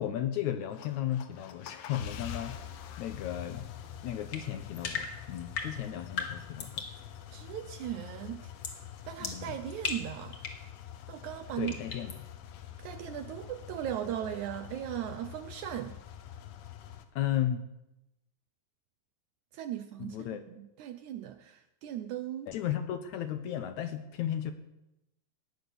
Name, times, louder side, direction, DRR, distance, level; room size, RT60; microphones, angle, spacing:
voice 1, 0.0-2.6 3.0-3.7 4.0-6.8 9.2-9.6 11.6-12.1 17.2-17.6 20.0-20.4 22.5-24.5, left 11 dB, 75° left, 9 dB, 1.9 m, -34 dB
sound 1, 0.6-17.1, left 10 dB, 90° left, 2.9 m, -46 dB
sound 2, 4.3-7.0 8.6-8.8 9.2-10.7 11.7-12.2, left 5 dB, 45° left, 2.0 m, -38 dB
voice 2, 7.3-8.5 9.1-10.4 11.1-11.7 12.8-16.0 19.5-22.5, right 11 dB, 75° right, 10 dB, 1.8 m, -38 dB
17.5 x 9.8 x 6.8 m, 0.89 s
omnidirectional pair, 4.0 m